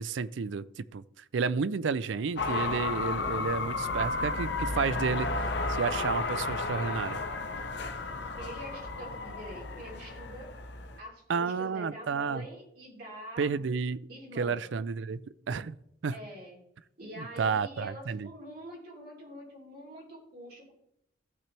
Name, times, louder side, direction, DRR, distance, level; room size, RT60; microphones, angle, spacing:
voice 1, 0.0-5.3 5.7-7.2 11.3-12.5 13.4-14.0 14.4-15.2 15.5-15.8 16.0-16.2 17.2-18.3, right 5 dB, 70° right, 17 dB, 0.4 m, -31 dB
sound 1, 2.4-11.0, left 3 dB, 60° left, 0.9 m, -33 dB
voice 2, 8.4-10.5 11.0-13.5 14.1-14.7 16.1-16.6 17.0-20.7, equal, 50° right, -4 dB, 3.3 m, -45 dB
15.5 x 6.0 x 3.3 m, 0.77 s
head